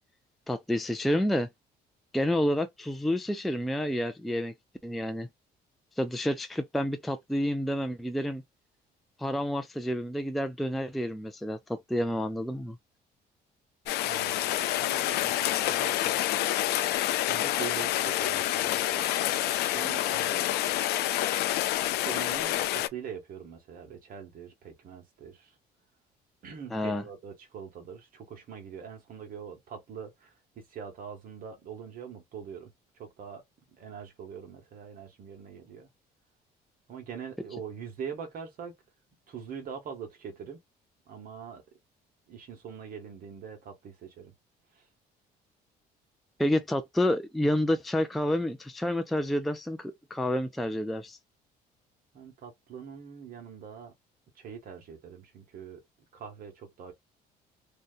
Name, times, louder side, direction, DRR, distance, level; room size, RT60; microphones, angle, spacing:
voice 1, 0.5-1.5 2.1-4.5 4.8-5.3 6.0-8.4 9.2-12.8 26.7-27.0 46.4-51.2, left 1 dB, ahead, 0.3 m, -29 dB
Rain, 13.9-22.9, left 14 dB, 75° left, 0.4 m, -28 dB
voice 2, 14.0-16.2 17.2-19.1 19.7-20.5 21.9-25.6 26.4-33.4 33.8-35.9 36.9-38.7 39.3-40.6 41.1-41.6 42.3-44.3 44.7-44.9 52.1-53.9 54.3-55.8 56.1-56.9, right 7 dB, 55° right, 1.0 m, -43 dB
2.7 x 2.2 x 2.3 m
cardioid pair, 110°, 17 cm